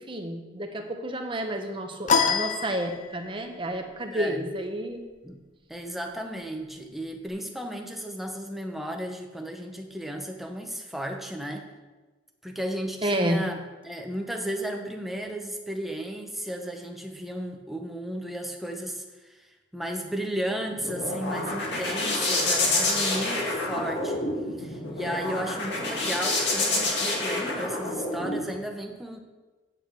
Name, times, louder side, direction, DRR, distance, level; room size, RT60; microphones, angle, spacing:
voice 1, 0.0-5.1 13.0-13.4, right 1 dB, 25° right, 4 dB, 0.9 m, -30 dB
sound 1, 2.1-3.4, left 5 dB, 40° left, 0.5 m, -25 dB
voice 2, 4.1-4.5 5.2-5.4 5.7-11.7 12.4-13.6 13.8-19.5 19.7-24.3 24.6-29.2, equal, ahead, 3 dB, 0.9 m, -34 dB
sound 2, 20.5-28.4, left 2 dB, 65° left, 2.2 m, -28 dB
8.7 x 8.7 x 4.7 m, 1.2 s
head